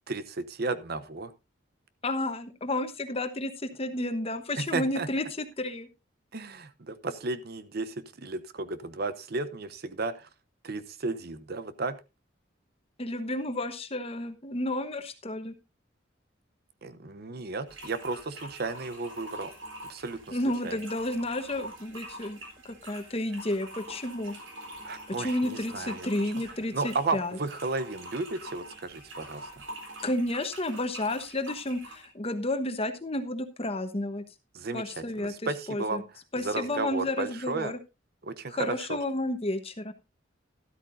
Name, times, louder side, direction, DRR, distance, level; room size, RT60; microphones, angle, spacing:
voice 1, 0.1-1.3 4.6-5.1 6.3-10.3 10.6-12.0 16.8-19.5 19.9-20.4 20.6-20.8 24.8-26.3 26.7-29.6 34.5-36.0 36.4-37.7 38.2-39.0, right 3 dB, 55° right, 13 dB, 0.8 m, -34 dB
voice 2, 2.0-5.9 13.0-15.5 20.3-22.4 22.6-24.3 25.1-27.4 30.0-34.2 34.7-35.3 35.7-36.0 36.3-37.8 38.5-39.9, left 1 dB, 30° left, 9 dB, 1.1 m, -31 dB
sound 1, 17.7-32.1, right 1 dB, 85° right, 3.8 m, -45 dB
12.5 x 12.5 x 2.6 m, 0.26 s
head